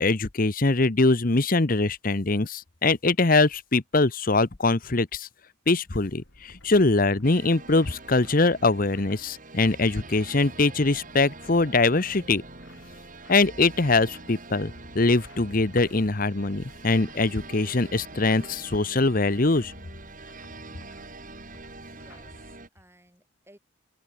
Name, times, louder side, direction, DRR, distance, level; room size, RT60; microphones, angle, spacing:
voice 1, 0.0-5.3 5.7-12.4 13.3-19.7, left 3 dB, 45° left, 1.0 m, -23 dB
sound 1, 5.9-22.5, left 1 dB, 65° left, 4.0 m, -52 dB
sound 2, 7.2-22.7, right 3 dB, 40° right, 4.9 m, -45 dB
voice 2, 21.8-23.6, right 1 dB, 10° right, 7.0 m, -57 dB
open air
head